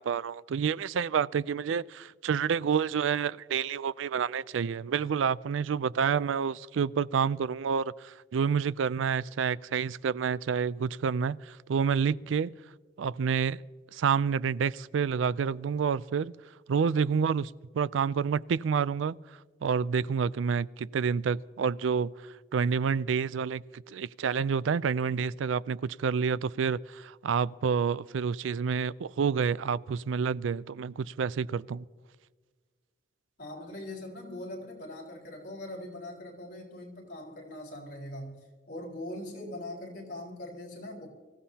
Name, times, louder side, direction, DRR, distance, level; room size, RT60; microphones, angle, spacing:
voice 1, 0.0-12.5 13.0-13.6 13.9-16.3 16.7-19.2 19.6-31.9, right 6 dB, 85° right, 0.4 m, -29 dB
voice 2, 33.4-41.1, left 1 dB, 50° left, 4.2 m, -41 dB
25.0 x 15.5 x 2.8 m
head